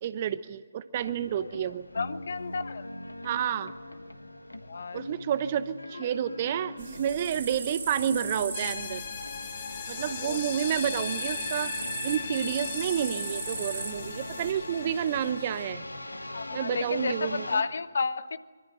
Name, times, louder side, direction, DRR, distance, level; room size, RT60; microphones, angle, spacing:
voice 1, 0.0-1.9 3.2-3.7 4.9-9.0 9.9-11.7 12.0-15.8 16.5-17.6, right 9 dB, 30° right, 15 dB, 0.9 m, -30 dB
sound 1, 0.9-17.6, left 1 dB, 75° left, 1.8 m, -42 dB
voice 2, 1.4-2.9 4.7-5.0 5.9-6.1 10.2-10.4 16.3-18.4, left 4 dB, 55° left, 14 dB, 1.2 m, -32 dB
sound 2, 6.8-14.5, right 4 dB, 45° right, 4.3 m, -38 dB
sound 3, 8.5-15.7, left 7 dB, 35° left, 1.9 m, -38 dB
25.0 x 24.0 x 8.0 m, 1.4 s
figure-of-eight pair, 140°, 0 cm